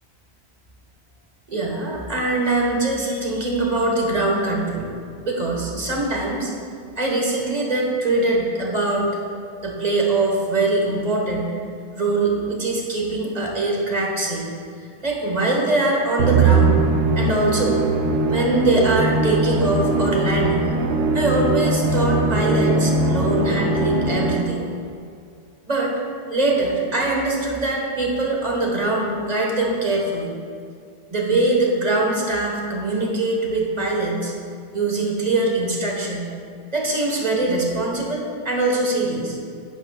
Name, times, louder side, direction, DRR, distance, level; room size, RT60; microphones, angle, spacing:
voice 1, 1.5-4.9 5.2-6.5 7.0-9.2 9.6-11.5 12.0-14.4 15.0-16.8 17.1-17.8 18.3-20.7 21.1-24.6 25.7-25.9 26.3-30.3 31.1-34.3 34.7-36.3 36.7-39.4, right 2 dB, 40° right, -2 dB, 1.6 m, -22 dB
Musical instrument, 16.2-24.7, right 3 dB, 70° right, 1.0 m, -20 dB
11.5 x 9.1 x 2.4 m, 2.3 s
omnidirectional pair, 1.1 m